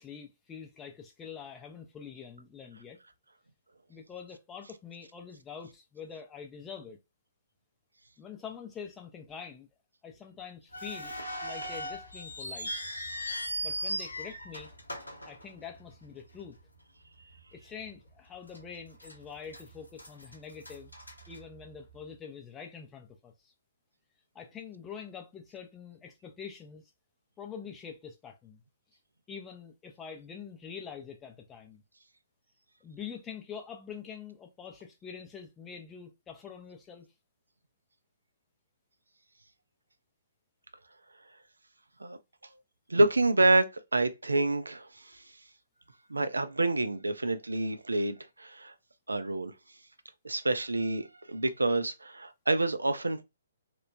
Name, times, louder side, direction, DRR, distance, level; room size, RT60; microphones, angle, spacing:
voice 1, 0.0-3.0 3.9-7.0 8.2-9.7 10.0-11.1 11.4-12.7 13.6-14.7 15.2-16.6 17.5-20.9 21.3-23.5 24.3-26.8 27.4-28.6 29.3-31.8 32.8-37.1, left 7 dB, 15° left, 0.5 m, -45 dB
sound 1, 10.7-16.0 16.3-16.4 17.2-17.4 17.8-17.9 18.5-19.1 19.5-22.0, equal, 90° left, 0.8 m, -38 dB
voice 2, 42.9-44.9 46.1-48.7 49.1-49.5 50.2-53.2, right 2 dB, 80° right, 0.4 m, -27 dB
2.9 x 2.1 x 2.4 m
figure-of-eight pair, 130°, 0 cm